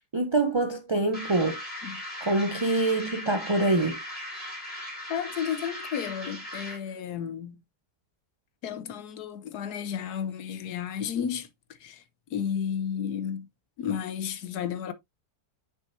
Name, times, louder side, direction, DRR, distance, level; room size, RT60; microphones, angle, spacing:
voice 1, 0.1-1.6 2.2-4.0, right 2 dB, 30° right, 0.5 m, -25 dB
sound 1, 1.1-6.9, left 1 dB, 5° left, 3.3 m, -38 dB
voice 2, 5.1-7.6 8.6-11.5 11.8-12.0 12.3-13.5 13.8-14.9, left 8 dB, 80° left, 1.4 m, -32 dB
6.3 x 6.3 x 2.7 m
omnidirectional pair, 1.7 m